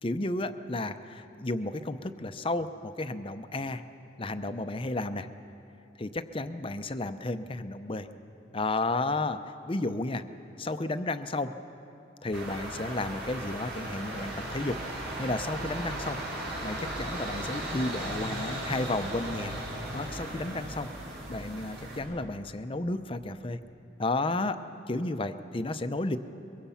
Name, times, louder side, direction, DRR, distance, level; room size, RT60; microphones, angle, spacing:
voice 1, 0.0-3.8 4.2-5.3 6.0-8.1 8.5-10.2 10.6-11.5 12.2-14.8 15.2-16.2 16.6-20.9 21.3-23.6 24.0-26.2, left 2 dB, 30° left, 10 dB, 0.7 m, -32 dB
sound 1, 12.3-22.0, right 1 dB, 70° right, 6.2 m, -36 dB
23.0 x 22.5 x 5.7 m, 2.8 s
head